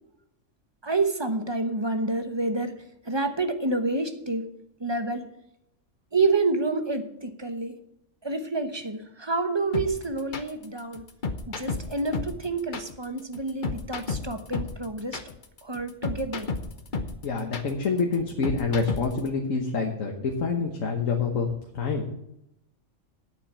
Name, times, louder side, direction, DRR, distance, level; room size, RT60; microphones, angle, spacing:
voice 1, 0.8-2.7 3.0-4.5 4.8-5.3 6.1-7.7 8.2-11.0 11.5-15.2 15.6-16.5, right 3 dB, 25° right, 8 dB, 0.9 m, -28 dB
sound 1, 9.7-19.3, left 4 dB, 40° left, 1.0 m, -32 dB
voice 2, 17.2-22.1, left 4 dB, 90° left, 2 dB, 1.6 m, -27 dB
8.9 x 7.4 x 8.8 m, 0.82 s
omnidirectional pair, 1.3 m